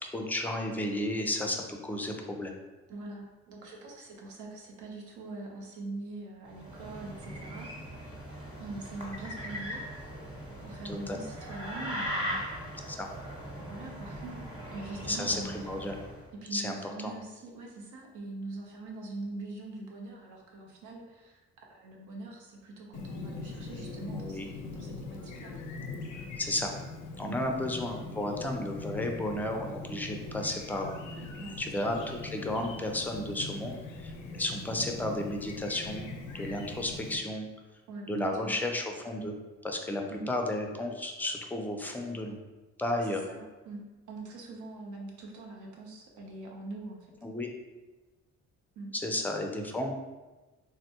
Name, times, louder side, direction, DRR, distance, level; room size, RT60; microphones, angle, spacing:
voice 1, 0.0-2.5 10.9-11.2 12.9-13.1 15.0-15.9 16.5-16.8 17.0-17.1 24.1-24.5 26.4-26.7 27.2-31.3 31.6-37.5 38.1-39.3 39.6-42.4 42.8-43.2 47.2-47.5 48.9-49.9, left 1 dB, 5° left, 2 dB, 0.3 m, -33 dB
voice 2, 2.9-7.7 8.6-9.8 10.6-12.4 13.7-15.5 16.4-21.4 21.7-25.5 27.2-27.4 31.4-31.5 36.3-36.5 37.9-38.5 40.1-40.3 42.8-43.8 44.1-47.2 48.8-48.9, right 2 dB, 80° right, -1 dB, 0.8 m, -43 dB
sound 1, 6.5-16.2, equal, 15° right, 1.1 m, -39 dB
Chirp tweet, 22.9-37.2, left 3 dB, 85° left, 0.5 m, -41 dB
3.4 x 2.2 x 2.8 m, 1.2 s
cardioid pair, 90°, 30 cm